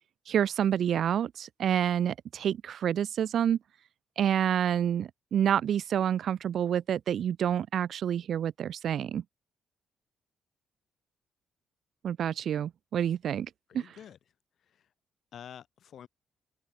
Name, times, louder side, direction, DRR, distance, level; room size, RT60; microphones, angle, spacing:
voice 1, 0.3-3.6 4.2-9.2 12.0-13.5 13.7-13.8, right 9 dB, 65° right, 0.8 m, -28 dB
voice 2, 13.7-14.9 15.3-16.1, left 9 dB, 60° left, 2.9 m, -49 dB
open air
cardioid pair, 90°, 0 cm